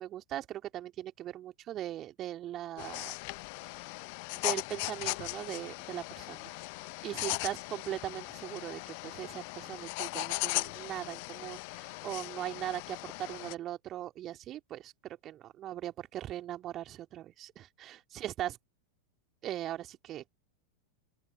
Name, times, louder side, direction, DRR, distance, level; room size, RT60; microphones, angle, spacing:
voice 1, 0.0-3.1 3.7-3.9 4.4-6.5 7.0-18.6 19.4-20.3, right 12 dB, 30° right, 3.2 m, -40 dB
sound 1, 2.8-13.5, left 32 dB, 45° left, 1.1 m, -38 dB
open air
figure-of-eight pair, 90°, 0 cm